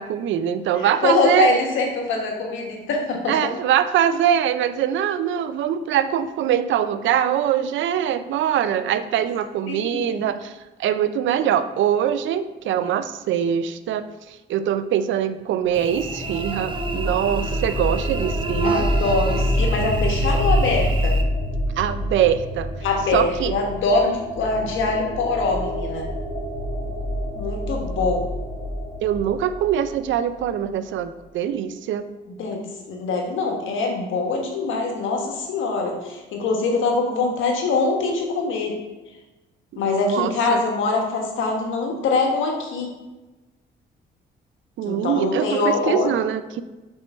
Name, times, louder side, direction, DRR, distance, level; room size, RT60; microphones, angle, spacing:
voice 1, 0.0-1.5 3.3-10.5 10.8-14.1 14.5-18.9 21.8-22.7 23.1-23.5 29.0-32.0 39.7-40.6 44.8-46.6, right 9 dB, 75° right, 12 dB, 0.5 m, -23 dB
voice 2, 0.8-3.5 9.7-10.2 18.6-21.2 22.8-26.1 27.3-28.4 32.4-38.8 39.8-42.9 44.8-46.1, left 3 dB, 80° left, 1 dB, 1.4 m, -23 dB
sound 1, 15.7-30.5, equal, 45° left, 1.9 m, -26 dB
Cricket / Buzz, 15.7-21.2, right 4 dB, 25° right, 0.7 m, -30 dB
5.3 x 4.5 x 4.5 m, 1.1 s
cardioid pair, 90°, 20 cm